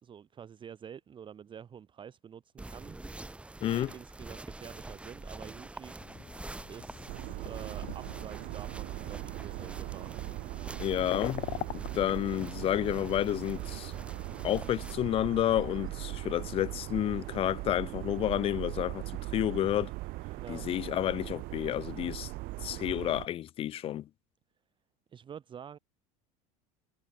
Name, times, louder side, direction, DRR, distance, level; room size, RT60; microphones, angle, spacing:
voice 1, 0.0-3.0 3.7-6.0 6.7-10.1 20.4-20.7 25.1-25.8, right 8 dB, 30° right, 1.1 m, -47 dB
sound 1, 2.6-14.9, right 2 dB, 5° right, 0.6 m, -46 dB
sound 2, 6.0-17.6, left 20 dB, 60° left, 1.1 m, -46 dB
sound 3, 7.1-23.3, right 21 dB, 60° right, 1.0 m, -40 dB
voice 2, 10.8-11.4 11.7-13.9 14.4-19.0 19.3-19.9 20.5-22.3 22.6-24.1, left 12 dB, 35° left, 0.4 m, -30 dB
supercardioid pair, 115°, 17 cm